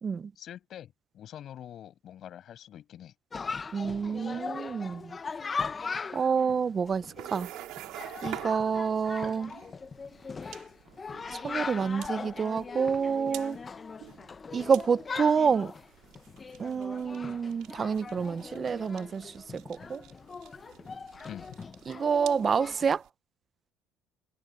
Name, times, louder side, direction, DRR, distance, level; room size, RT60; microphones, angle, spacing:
voice 1, 0.4-3.1 21.2-21.6, left 10 dB, 45° left, 5.8 m, -45 dB
Chatter, 3.3-22.9, left 5 dB, 20° left, 0.7 m, -40 dB
voice 2, 3.7-5.2 6.1-7.5 8.2-9.5 11.3-13.6 14.5-15.7 16.6-20.0 21.9-23.0, right 6 dB, 25° right, 0.6 m, -28 dB
sound 1, 6.8-23.1, right 16 dB, 70° right, 4.4 m, -48 dB
cardioid pair, 140°, 0 cm